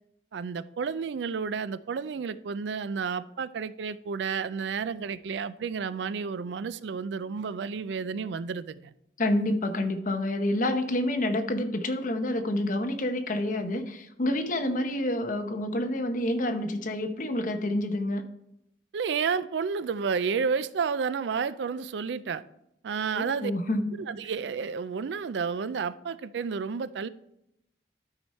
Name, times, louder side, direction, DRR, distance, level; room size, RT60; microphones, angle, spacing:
voice 1, 0.3-8.9 18.9-22.4 22.8-23.5 24.0-27.1, right 5 dB, 70° right, 0.4 m, -31 dB
voice 2, 9.2-18.2 23.1-23.9, left 1 dB, 45° left, 0.9 m, -28 dB
12.5 x 4.9 x 4.2 m
head